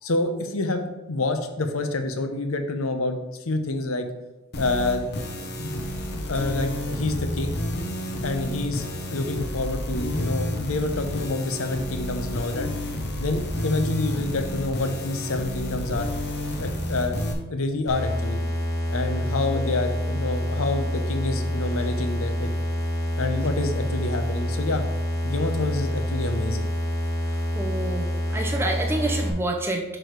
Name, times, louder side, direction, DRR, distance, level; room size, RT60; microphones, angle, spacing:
voice 1, 0.0-3.2 3.4-4.1 4.6-5.8 6.3-7.5 8.2-12.7 13.2-17.2 17.5-18.4 18.9-22.5 23.1-24.8 25.2-26.7, left 2 dB, 70° left, 7 dB, 0.8 m, -28 dB
sound 1, 4.5-17.3, left 1 dB, 50° left, 1.0 m, -30 dB
sound 2, 17.9-29.3, left 1 dB, 15° left, 1.2 m, -27 dB
voice 2, 27.5-29.8, right 2 dB, 10° right, 2 dB, 0.6 m, -28 dB
6.1 x 4.9 x 4.7 m, 1.0 s
head